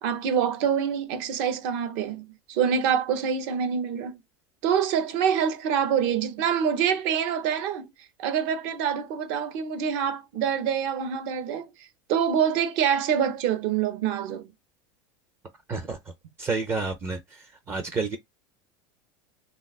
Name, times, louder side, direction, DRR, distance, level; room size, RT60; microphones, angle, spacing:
voice 1, 0.0-4.2 4.6-7.9 8.2-11.7 12.1-14.5, right 8 dB, 60° right, 0.7 m, -26 dB
voice 2, 15.7-16.1 16.4-18.2, right 4 dB, 20° right, 0.4 m, -30 dB
3.2 x 2.3 x 2.3 m
supercardioid pair, 140°, 11 cm